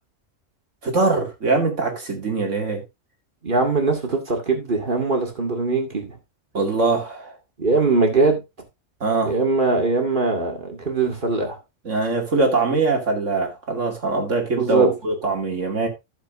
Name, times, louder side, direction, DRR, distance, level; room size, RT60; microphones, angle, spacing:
voice 1, 0.8-2.8 6.5-7.3 9.0-9.3 11.8-15.9, right 3 dB, 70° right, 2.7 m, -22 dB
voice 2, 3.4-6.2 7.6-8.4 9.3-11.6 14.6-14.9, right 3 dB, 40° right, 2.3 m, -21 dB
13.0 x 7.2 x 2.5 m
omnidirectional pair, 1.3 m